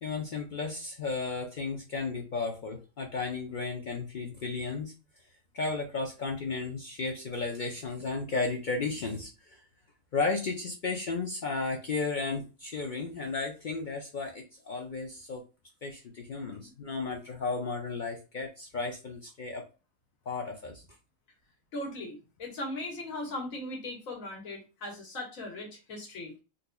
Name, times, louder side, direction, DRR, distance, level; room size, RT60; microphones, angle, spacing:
voice 1, 0.0-4.9 5.5-9.6 10.1-15.4 15.8-19.6 20.3-20.9, left 4 dB, 55° left, 2 dB, 0.5 m, -34 dB
voice 2, 21.7-26.3, left 1 dB, 85° left, 0 dB, 1.6 m, -38 dB
4.0 x 2.7 x 2.2 m, 0.30 s
omnidirectional pair, 1.4 m